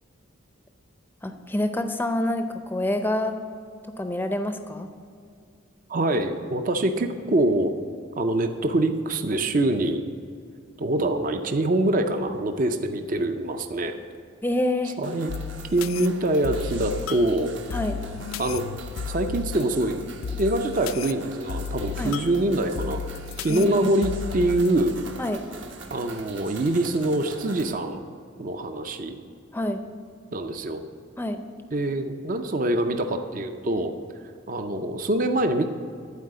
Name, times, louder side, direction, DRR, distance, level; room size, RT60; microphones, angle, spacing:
voice 1, 1.2-3.4 4.0-4.9 14.4-15.0 17.7-18.0 22.0-22.1 23.5-23.8 25.2-25.4 29.5-29.8 31.2-31.4, left 1 dB, 10° left, 7 dB, 0.5 m, -27 dB
voice 2, 5.9-7.7 8.2-10.0 10.8-14.0 15.0-15.3 15.7-17.5 18.4-18.7 19.1-20.0 20.4-23.0 23.4-25.0 25.9-28.0 28.4-29.2 30.3-30.8 31.7-33.9 34.5-35.7, right 1 dB, 40° right, 7 dB, 0.5 m, -24 dB
sound 1, 15.0-27.7, right 4 dB, 60° right, 1.0 m, -43 dB
sound 2, 15.3-25.3, left 7 dB, 85° left, 0.3 m, -35 dB
11.5 x 4.8 x 7.5 m, 2.3 s
head